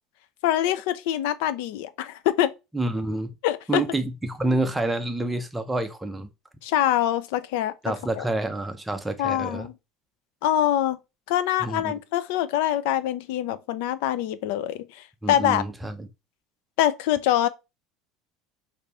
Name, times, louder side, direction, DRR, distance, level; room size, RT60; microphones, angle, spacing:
voice 1, 0.4-2.5 3.4-3.8 6.6-8.3 9.2-9.7 10.4-11.0 11.3-15.6 16.8-17.5, left 12 dB, 70° left, 0.5 m, -24 dB
voice 2, 2.7-3.3 3.7-6.3 7.8-9.7 11.6-12.0 15.2-16.1, right 2 dB, 5° right, 0.5 m, -28 dB
5.4 x 2.6 x 3.3 m
cardioid pair, 175°, 0 cm